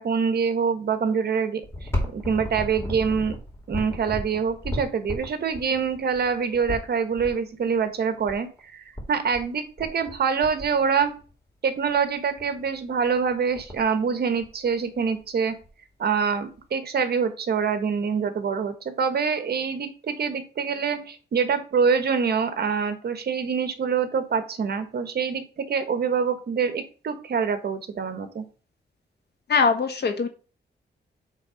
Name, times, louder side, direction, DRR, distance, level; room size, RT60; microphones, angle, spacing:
voice 1, 0.0-3.3 3.7-11.2 11.6-15.5 16.0-28.4, right 6 dB, 65° right, 10 dB, 1.2 m, -25 dB
sound 1, 1.6-7.3 8.2-8.3 8.6-8.7 8.9-9.5 9.8-10.2 10.4-11.3 11.9-12.0 12.4-12.7 13.0-13.1 13.3-13.9 14.4-15.2 15.6-15.7 16.6-16.7, left 1 dB, 15° left, 2.6 m, -33 dB
voice 2, 29.5-30.3, left 5 dB, 65° left, 6 dB, 1.3 m, -21 dB
8.2 x 3.6 x 5.1 m, 0.37 s
wide cardioid pair, 125°, 18 cm